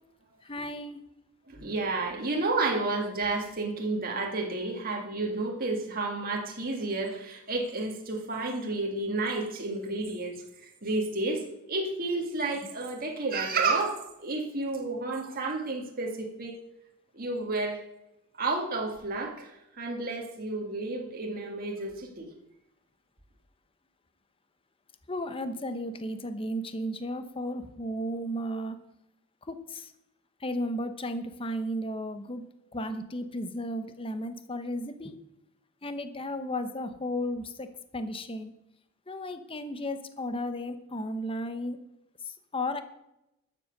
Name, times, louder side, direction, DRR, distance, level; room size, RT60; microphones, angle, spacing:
voice 1, 0.5-1.0 25.1-28.8 29.5-29.9 30.4-32.4 32.7-35.2 35.8-37.7 37.9-38.5 39.1-41.8 42.5-42.8, equal, 25° left, 9 dB, 0.9 m, -34 dB
voice 2, 1.5-10.4 10.8-16.6 17.1-17.8 18.4-22.3, right 3 dB, 40° right, 1 dB, 1.9 m, -31 dB
12.5 x 7.6 x 6.6 m, 0.85 s
head